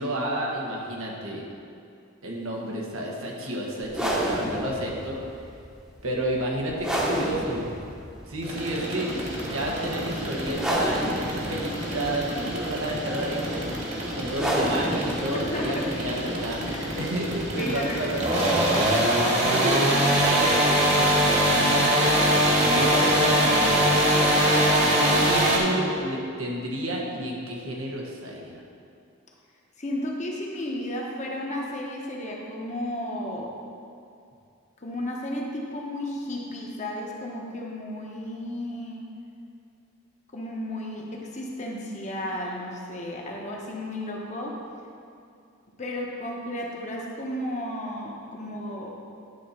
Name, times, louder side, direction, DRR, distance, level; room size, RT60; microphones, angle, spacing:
voice 1, 0.0-1.4 2.2-5.2 6.0-7.7 8.3-13.8 14.1-16.6 17.0-18.9 19.3-19.9 20.1-23.8 25.0-28.6, right 1 dB, 85° right, -2 dB, 1.4 m, -31 dB
sound 1, 3.8-19.2, right 1 dB, 5° right, 1.0 m, -33 dB
sound 2, 8.4-25.6, right 1 dB, 35° right, 1.4 m, -24 dB
voice 2, 15.3-15.9 16.7-16.9 17.6-18.1 29.8-33.5 34.8-39.0 40.3-44.6 45.8-48.9, left 1 dB, 35° left, -2 dB, 1.0 m, -33 dB
9.9 x 4.2 x 5.8 m, 2.4 s
head